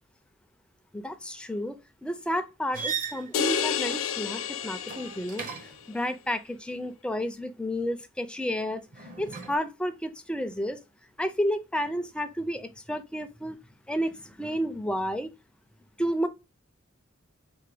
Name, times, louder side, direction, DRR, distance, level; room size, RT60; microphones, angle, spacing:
voice 1, 0.9-5.4 5.9-8.8 9.2-10.8 11.2-13.6 13.9-15.3 16.0-16.3, equal, 5° left, 0.4 m, -31 dB
sound 1, 2.7-5.9 8.9-9.6, right 6 dB, 40° right, 0.7 m, -38 dB
sound 2, 3.3-5.7, left 8 dB, 65° left, 0.4 m, -30 dB
4.5 x 2.2 x 3.3 m
head